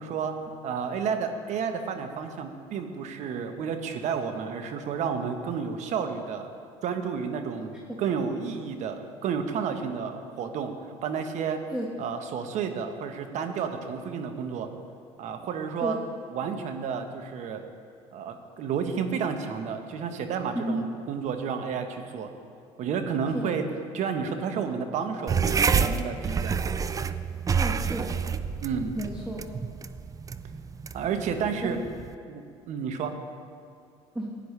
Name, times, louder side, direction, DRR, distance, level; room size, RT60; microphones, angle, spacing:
voice 1, 0.0-6.5 6.8-10.7 11.0-11.6 12.0-14.7 15.2-16.0 16.3-17.6 18.1-22.3 22.8-23.6 23.9-26.5 28.6-29.0 30.9-31.8 32.3-33.1, right 6 dB, 60° right, 7 dB, 1.1 m, -31 dB
sound 1, 25.3-32.1, right 6 dB, 25° right, 0.4 m, -28 dB
voice 2, 27.5-28.3 29.0-29.4 31.6-31.7 34.1-34.3, right 1 dB, 5° right, -2 dB, 1.5 m, -32 dB
15.5 x 9.9 x 3.3 m, 2.3 s
supercardioid pair, 80°, 14 cm